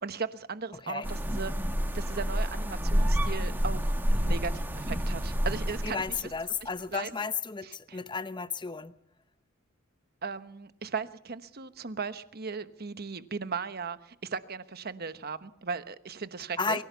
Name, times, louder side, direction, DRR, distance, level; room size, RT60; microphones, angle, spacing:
voice 1, 0.0-1.5 1.9-6.2 6.6-7.1 7.6-8.0 10.2-16.8, right 5 dB, 50° right, 12 dB, 1.1 m, -37 dB
sound 1, 1.0-6.3, equal, 10° right, 1.7 m, -28 dB
voice 2, 5.8-8.9 16.6-16.8, left 5 dB, 25° left, 12 dB, 0.8 m, -33 dB
24.0 x 16.0 x 7.0 m, 0.68 s
head